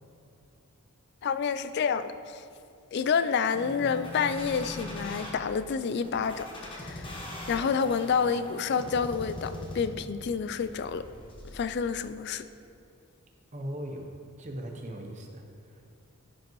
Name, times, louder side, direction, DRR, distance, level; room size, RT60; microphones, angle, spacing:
voice 1, 1.2-2.4 2.9-7.2 7.5-11.1 11.5-12.5, left 6 dB, 50° left, 13 dB, 0.3 m, -29 dB
sound 1, 3.5-5.3 6.0-10.1 10.5-11.5, left 1 dB, 25° left, 1.2 m, -40 dB
voice 2, 13.5-14.1 14.4-15.8, equal, 35° right, 2 dB, 0.9 m, -39 dB
15.5 x 5.2 x 3.1 m, 2.5 s
head